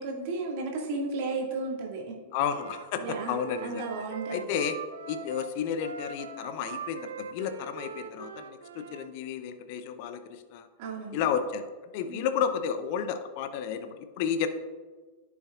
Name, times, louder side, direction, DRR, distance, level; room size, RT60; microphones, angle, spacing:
voice 1, 0.0-2.2 3.0-3.4 3.6-4.4 10.8-11.3 12.1-12.2, right 3 dB, 45° right, -1 dB, 2.0 m, -34 dB
voice 2, 2.3-3.8 4.3-4.8 5.1-10.7 11.1-14.5, left 7 dB, 45° left, 9 dB, 0.6 m, -32 dB
Wind instrument woodwind instrument, 2.5-9.1, right 6 dB, 65° right, 0.6 m, -42 dB
14.5 x 6.0 x 2.4 m, 1.4 s
figure-of-eight pair, 90°, 0 cm